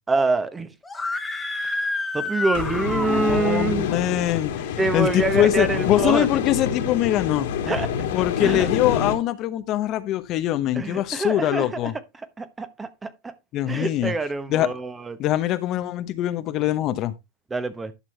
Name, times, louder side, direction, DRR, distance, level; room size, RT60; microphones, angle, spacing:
voice 1, 0.1-0.7 2.1-3.9 4.8-6.3 7.7-7.9 8.4-8.7 10.8-11.9 12.4-13.3 13.7-15.2 17.5-17.9, right 3 dB, 15° right, 1.0 m, -25 dB
Screaming, 0.8-3.6, left 3 dB, 10° left, 1.3 m, -29 dB
sound 1, 2.5-9.1, left 8 dB, 65° left, 2.3 m, -27 dB
voice 2, 2.9-7.5 8.1-11.9 13.5-14.1 14.5-14.7 15.2-17.1, left 13 dB, 40° left, 0.8 m, -23 dB
11.0 x 6.1 x 3.2 m
hypercardioid pair, 120°, 0 cm